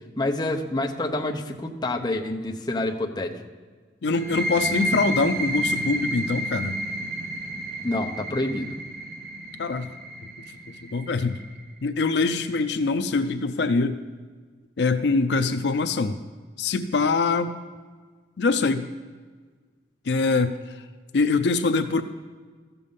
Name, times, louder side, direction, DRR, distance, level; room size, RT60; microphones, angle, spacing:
voice 1, 0.2-3.3 7.8-8.8, left 2 dB, 25° left, 2 dB, 0.8 m, -27 dB
voice 2, 4.0-6.8 9.6-9.9 10.9-11.4 11.8-14.0 14.8-16.2 16.6-17.5 18.4-18.9 20.1-20.5 21.1-22.0, left 3 dB, 70° left, 9 dB, 0.5 m, -23 dB
sound 1, 4.1-11.6, right 1 dB, 55° right, 1.1 m, -31 dB
14.5 x 7.0 x 5.4 m, 1.5 s
head